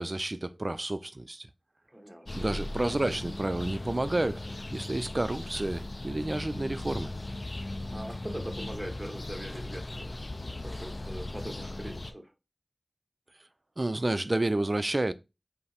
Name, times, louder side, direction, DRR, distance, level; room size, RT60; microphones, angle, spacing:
voice 1, 0.0-1.5 2.3-4.4 4.7-7.1 13.8-15.1, right 2 dB, 45° right, 0.4 m, -30 dB
voice 2, 1.9-2.5 7.9-10.2 10.6-12.3, right 1 dB, 20° right, 1.1 m, -41 dB
sound 1, 2.3-12.1, left 2 dB, 50° left, 0.4 m, -38 dB
5.5 x 2.0 x 4.2 m
wide cardioid pair, 55°, 0 cm